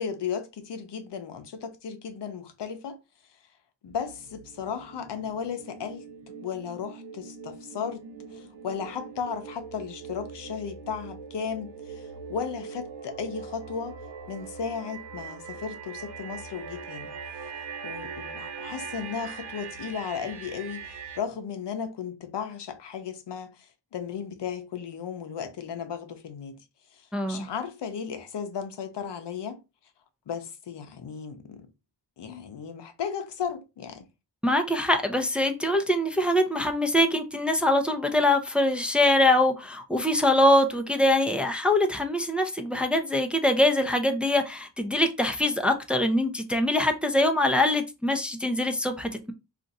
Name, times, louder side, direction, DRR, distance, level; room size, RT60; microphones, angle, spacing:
voice 1, 0.0-3.0 3.8-6.1 6.4-8.0 8.3-14.0 14.3-17.1 17.8-26.6 26.9-29.6 30.3-31.7 32.2-34.1, left 7 dB, 75° left, 0.7 m, -35 dB
sound 1, 3.9-21.2, right 6 dB, 70° right, 0.6 m, -41 dB
voice 2, 27.1-27.5 34.4-49.3, left 1 dB, 5° right, 0.5 m, -23 dB
2.5 x 2.5 x 4.0 m
cardioid pair, 60°, 42 cm